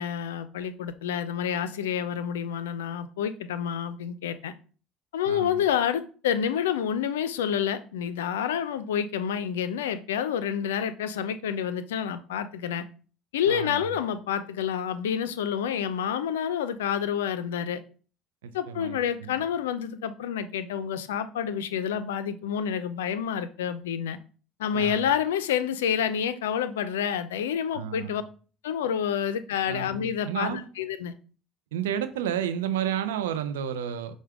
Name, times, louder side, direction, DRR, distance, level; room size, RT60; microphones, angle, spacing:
voice 1, 0.0-4.5 5.1-12.8 13.3-17.8 18.5-24.2 24.6-28.2 28.6-31.1, left 8 dB, 90° left, 0.4 m, -28 dB
voice 2, 5.3-5.6 13.5-13.9 18.4-19.3 24.7-25.1 27.7-28.2 29.6-29.9 30.3-30.6 31.7-34.2, right 9 dB, 90° right, 0.4 m, -31 dB
5.0 x 2.2 x 4.6 m
hypercardioid pair, 75°, 0 cm